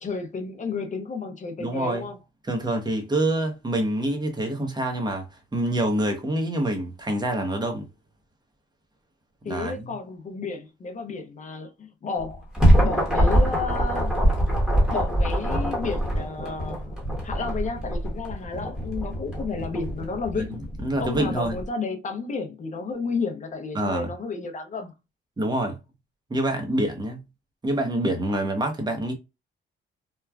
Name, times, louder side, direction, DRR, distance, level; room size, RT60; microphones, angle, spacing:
voice 1, 0.0-2.2 9.4-12.5 12.8-14.1 14.9-17.0 17.2-20.6 21.0-24.9, left 4 dB, 40° left, 0.6 m, -32 dB
voice 2, 1.6-2.1 2.4-5.3 5.5-7.9 9.5-9.9 20.3-21.6 23.7-24.1 25.4-25.8 26.3-27.2 27.6-29.1, right 1 dB, 20° right, 0.9 m, -26 dB
sound 1, 12.2-21.7, equal, 5° right, 1.2 m, -24 dB
3.1 x 2.2 x 2.3 m
cardioid pair, 90°, 20 cm